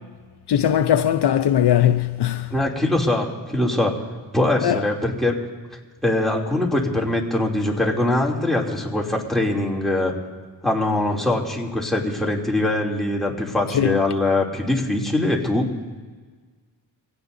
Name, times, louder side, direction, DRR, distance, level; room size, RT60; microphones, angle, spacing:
voice 1, 0.5-2.5 4.6-4.8 13.7-14.0, left 10 dB, 65° left, 0.6 m, -19 dB
voice 2, 2.5-3.9 4.3-5.4 6.0-10.1 10.6-15.7, left 1 dB, ahead, 2.9 m, -22 dB
24.0 x 17.0 x 2.7 m
cardioid pair, 80°, 44 cm